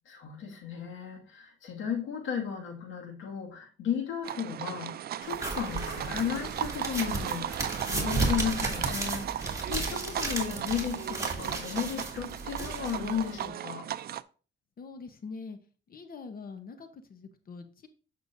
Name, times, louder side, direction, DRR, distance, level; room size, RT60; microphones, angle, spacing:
voice 1, 0.1-13.9, left 8 dB, 80° left, 2.0 m, -34 dB
sound 1, 4.2-14.2, right 11 dB, 50° right, 0.4 m, -36 dB
sound 2, 5.3-13.5, right 2 dB, 15° right, 2.6 m, -34 dB
voice 2, 14.8-15.6 15.9-17.9, left 4 dB, 45° left, 0.9 m, -44 dB
8.2 x 6.5 x 2.6 m
cardioid pair, 90°, 20 cm